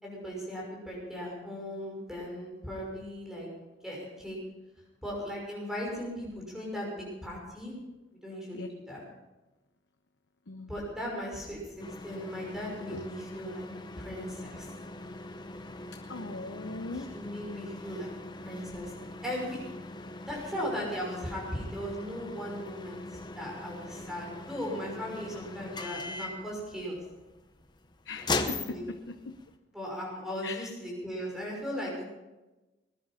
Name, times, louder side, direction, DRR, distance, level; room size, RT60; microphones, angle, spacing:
voice 1, 0.0-3.5 3.8-4.4 5.0-7.7 8.2-9.0 10.6-11.6 12.0-13.7 14.0-14.7 16.9-18.1 18.4-18.9 19.2-19.6 20.3-27.0 28.2-28.8 29.7-32.1, equal, 5° right, -3 dB, 5.9 m, -37 dB
sound 1, 11.8-29.5, left 3 dB, 25° left, 0.9 m, -41 dB
voice 2, 16.1-17.1 28.0-29.3 30.4-30.7, left 3 dB, 85° left, 6 dB, 0.8 m, -40 dB
20.5 x 10.5 x 5.7 m, 1.1 s
head